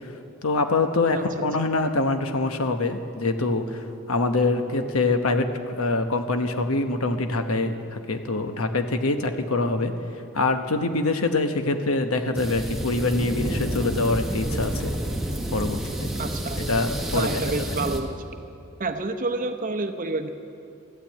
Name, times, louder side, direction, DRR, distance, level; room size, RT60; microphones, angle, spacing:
voice 1, 0.4-9.9 10.3-14.9 15.5-15.8 16.7-17.3, left 2 dB, 85° left, 7 dB, 1.0 m, -24 dB
sound 1, 12.4-18.0, right 1 dB, ahead, 1.3 m, -29 dB
voice 2, 16.2-16.6 17.1-18.2 18.8-20.3, right 3 dB, 40° right, 7 dB, 0.8 m, -28 dB
14.0 x 12.0 x 8.6 m, 2.6 s
head